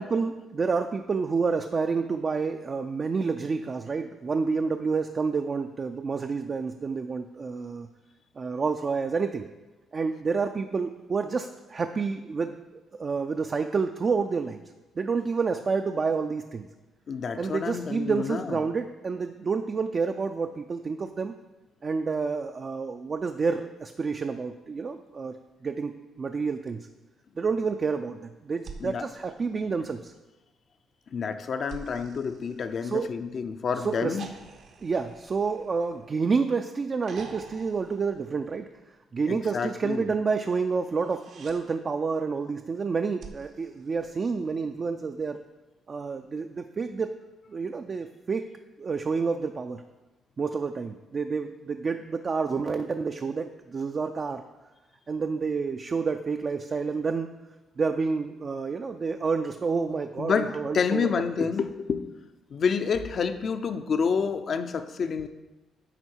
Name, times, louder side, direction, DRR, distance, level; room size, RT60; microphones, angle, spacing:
voice 1, 0.0-7.9 8.4-9.5 9.9-14.6 15.0-16.7 17.4-21.3 21.8-25.3 25.6-26.9 27.4-30.1 32.8-33.1 33.8-34.2 34.8-38.7 39.1-45.4 45.9-47.1 47.5-48.5 48.8-49.8 50.4-54.5 55.1-57.3 57.8-61.1 61.4-61.5, right 5 dB, 40° right, 6 dB, 0.4 m, -29 dB
voice 2, 17.1-18.5 28.8-29.0 31.1-34.3 39.3-40.1 60.2-62.0 62.5-65.3, left 6 dB, 50° left, 9 dB, 0.5 m, -28 dB
sound 1, 28.6-30.2 31.7-33.4 34.2-36.4 37.0-38.9 40.8-41.6 43.2-44.7 46.2-46.3, right 5 dB, 65° right, 0.8 m, -48 dB
10.0 x 3.8 x 4.5 m, 1.1 s
cardioid pair, 90°, 0 cm